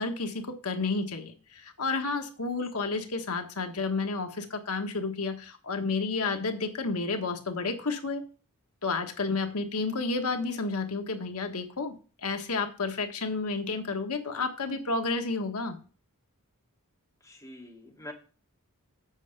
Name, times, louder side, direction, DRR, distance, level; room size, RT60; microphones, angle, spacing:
voice 1, 0.0-8.2 8.8-11.9 12.2-15.8, left 3 dB, 75° left, 5 dB, 1.5 m, -31 dB
voice 2, 17.2-18.1, left 1 dB, 15° left, -1 dB, 2.4 m, -46 dB
8.2 x 5.6 x 6.5 m, 0.37 s
head